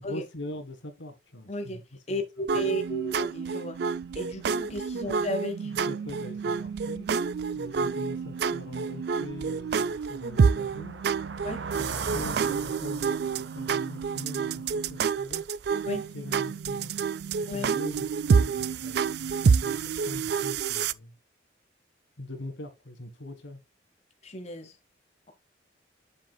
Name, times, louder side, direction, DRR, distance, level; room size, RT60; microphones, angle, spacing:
voice 1, 0.0-1.8 2.1-2.2 5.6-7.1 7.5-11.0 11.7-14.6 14.9-15.4 15.8-17.0 17.5-18.0 18.3-21.1 22.2-23.6, left 1 dB, 80° left, 1.7 m, -42 dB
voice 2, 1.5-1.8 2.1-3.8 4.1-5.7 11.4-11.6 15.8-16.0 17.5-17.7 24.2-24.7, equal, 35° left, 0.9 m, -33 dB
sound 1, 2.5-20.9, right 5 dB, 60° right, 0.3 m, -28 dB
sound 2, 8.3-8.4 8.9-15.5, right 4 dB, 80° right, 0.8 m, -40 dB
7.3 x 6.8 x 2.3 m
head